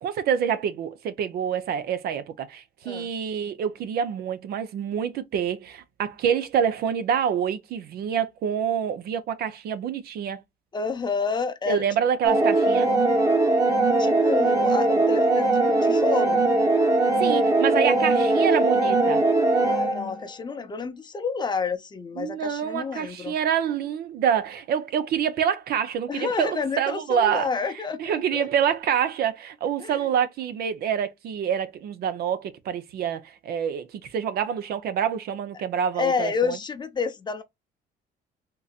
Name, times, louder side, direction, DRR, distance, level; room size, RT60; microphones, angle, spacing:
voice 1, 0.0-10.4 11.7-12.9 17.2-19.2 22.2-27.5 28.0-36.6, right 8 dB, 65° right, 0.7 m, -27 dB
voice 2, 10.7-11.8 14.0-16.5 19.6-23.3 26.1-28.5 29.8-30.1 36.0-37.4, left 5 dB, 25° left, 0.6 m, -29 dB
sound 1, 12.2-20.2, right 2 dB, 15° right, 0.9 m, -20 dB
3.8 x 2.7 x 2.4 m
cardioid pair, 110°, 17 cm